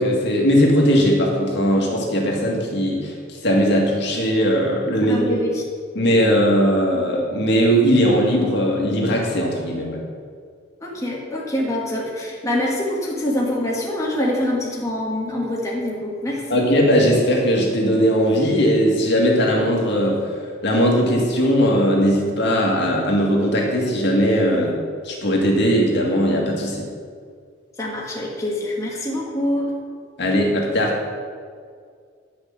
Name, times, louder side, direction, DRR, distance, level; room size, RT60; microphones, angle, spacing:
voice 1, 0.0-5.4 5.9-10.0 16.5-20.3 20.6-24.8 25.0-26.9 30.2-30.9, equal, 60° left, -1 dB, 2.2 m, -19 dB
voice 2, 5.0-5.6 6.9-7.0 10.8-16.5 27.8-29.7, left 1 dB, 15° left, -3 dB, 1.6 m, -25 dB
10.5 x 6.4 x 7.2 m, 2.1 s
head